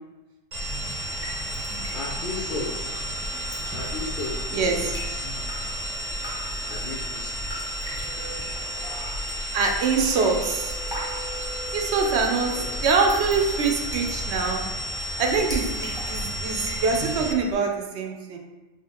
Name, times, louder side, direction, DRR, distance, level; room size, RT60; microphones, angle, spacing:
Drip, 0.5-17.5, equal, 5° right, 0.9 m, -37 dB
sound 1, 0.5-17.3, equal, 90° right, 1.2 m, -32 dB
voice 1, 1.9-3.0 3.7-5.7 6.7-7.7 8.4-8.5 12.5-12.8, left 3 dB, 60° left, -2 dB, 0.6 m, -36 dB
sound 2, 7.5-12.6 13.0-13.4, right 1 dB, 35° right, 0.6 m, -42 dB
voice 2, 9.5-10.7 11.7-12.5 12.8-14.6 15.2-18.4, right 4 dB, 70° right, 2 dB, 0.8 m, -24 dB
4.8 x 2.8 x 2.9 m, 1.1 s
omnidirectional pair, 1.2 m